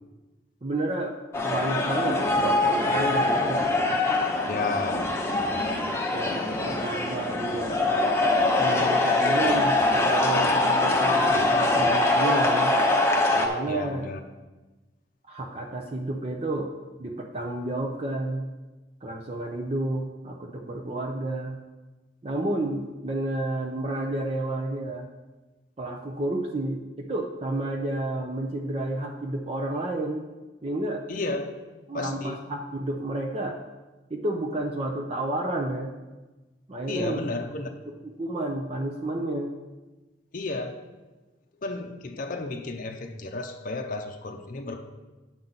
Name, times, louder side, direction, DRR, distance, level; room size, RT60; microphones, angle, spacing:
voice 1, 0.6-3.7 6.1-8.0 8.6-12.7 13.3-14.1 15.3-16.7 17.0-18.5 19.0-21.6 22.2-25.1 25.8-30.3 30.6-31.0 31.9-33.6 34.1-35.9 36.7-37.3 38.0-39.5, right 1 dB, 35° right, 1 dB, 0.6 m, -31 dB
sound 1, 1.3-13.5, left 2 dB, 15° left, 0.8 m, -23 dB
voice 2, 4.5-5.1 13.7-14.2 31.1-31.5 31.9-32.4 36.9-37.7 40.3-40.8 41.6-44.9, left 2 dB, 45° left, 4 dB, 0.6 m, -32 dB
8.8 x 7.3 x 4.0 m, 1.2 s
head